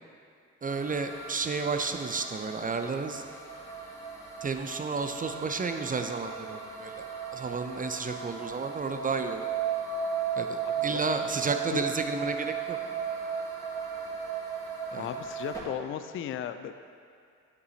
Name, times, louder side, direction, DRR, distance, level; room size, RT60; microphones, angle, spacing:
voice 1, 0.6-3.2 4.4-6.9 7.3-9.4 10.4-12.8 14.9-15.1, right 4 dB, 20° right, 6 dB, 0.5 m, -32 dB
sound 1, 0.7-15.6, right 6 dB, 5° left, 2.1 m, -36 dB
voice 2, 10.6-11.4 11.7-11.8 14.9-16.7, left 10 dB, 30° left, 10 dB, 0.4 m, -36 dB
9.4 x 8.1 x 2.9 m, 2.4 s
figure-of-eight pair, 45°, 41 cm